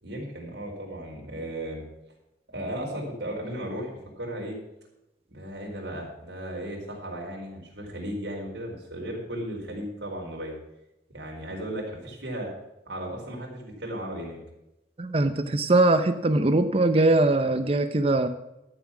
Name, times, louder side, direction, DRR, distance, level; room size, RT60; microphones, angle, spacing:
voice 1, 0.0-1.8 2.5-4.6 5.3-10.5 11.1-12.5 12.9-14.4, right 1 dB, 80° right, -1 dB, 4.3 m, -35 dB
voice 2, 15.0-18.3, right 2 dB, 35° right, 9 dB, 0.7 m, -21 dB
13.0 x 7.3 x 6.0 m, 0.91 s
head